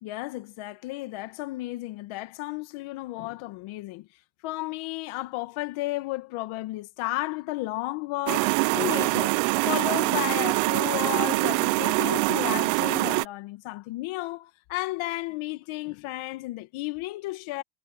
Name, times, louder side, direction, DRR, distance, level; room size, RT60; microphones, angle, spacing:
voice 1, 0.0-4.1 4.4-9.4 9.6-17.6, left 19 dB, 80° left, 2.0 m, -33 dB
sound 1, 8.3-13.3, right 28 dB, 80° right, 0.6 m, -24 dB
supercardioid pair, 65°, 49 cm